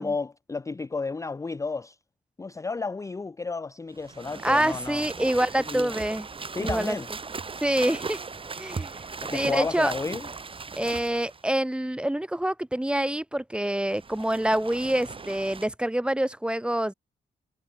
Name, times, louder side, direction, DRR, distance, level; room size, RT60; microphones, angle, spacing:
voice 1, 0.0-2.0 2.4-5.1 5.7-5.9 6.6-7.1 9.2-10.3, left 4 dB, 15° left, 0.6 m, -32 dB
sound 1, 3.9-11.5 13.7-15.7, right 4 dB, 30° right, 2.0 m, -38 dB
voice 2, 4.4-6.3 6.6-7.0 7.6-8.2 8.6-8.9 9.3-9.9 10.7-16.9, right 1 dB, 5° right, 1.1 m, -26 dB
wide cardioid pair, 160°, 18 cm